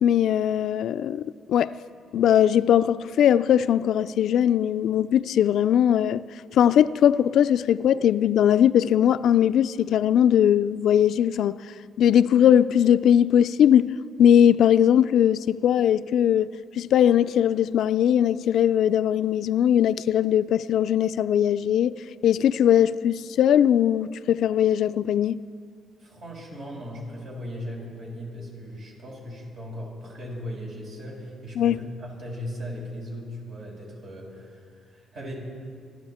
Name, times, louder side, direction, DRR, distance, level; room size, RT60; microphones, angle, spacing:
voice 1, 0.0-1.8 2.1-6.2 6.5-11.6 12.0-16.5 16.8-25.4 31.6-31.9, left 9 dB, 75° left, 0.3 m, -20 dB
voice 2, 26.0-35.3, equal, 70° right, 5.7 m, -38 dB
26.0 x 12.5 x 4.3 m
cardioid pair, 90°, 0 cm